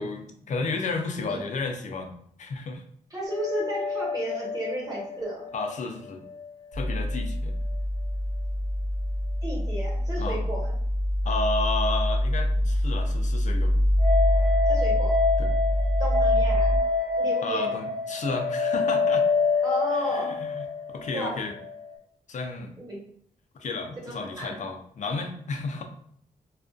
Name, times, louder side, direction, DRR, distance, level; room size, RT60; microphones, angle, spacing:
voice 1, 0.0-2.1 2.4-2.8 5.5-6.3 6.7-7.5 10.2-10.4 11.2-13.7 15.4-15.5 17.4-19.3 20.0-20.6 20.9-21.5 22.3-22.8 23.5-25.8, left 3 dB, 60° left, 4 dB, 0.4 m, -32 dB
voice 2, 3.1-5.4 9.4-10.7 14.7-15.1 16.0-16.8 17.2-17.7 19.6-20.4 21.1-21.4 22.8-23.0 24.0-24.6, right 1 dB, 25° right, -3 dB, 1.1 m, -33 dB
sound 1, 3.3-6.5 6.7-6.8 14.0-21.9, left 3 dB, 85° right, 0.9 m, -27 dB
sound 2, 6.7-16.8, left 1 dB, 45° right, 0.7 m, -25 dB
2.3 x 2.2 x 2.4 m, 0.65 s
wide cardioid pair, 105°, 14 cm